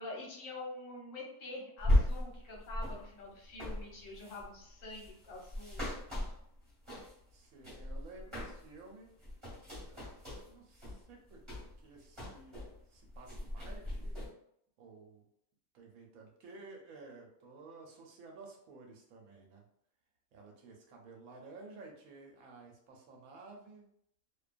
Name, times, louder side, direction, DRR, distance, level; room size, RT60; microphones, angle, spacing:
voice 1, 0.0-5.9, left 2 dB, 70° left, -2 dB, 1.2 m, -46 dB
sound 1, 1.8-7.3 7.6-8.8 9.1-12.8 13.1-14.3, left 1 dB, 20° right, 1.1 m, -36 dB
voice 2, 7.3-9.1 9.8-10.2 10.4-11.4 11.8-14.2 14.8-15.2 15.7-19.6 20.3-23.9, right 3 dB, 80° right, 1 dB, 1.0 m, -53 dB
2.5 x 2.2 x 2.4 m, 0.72 s
omnidirectional pair, 1.5 m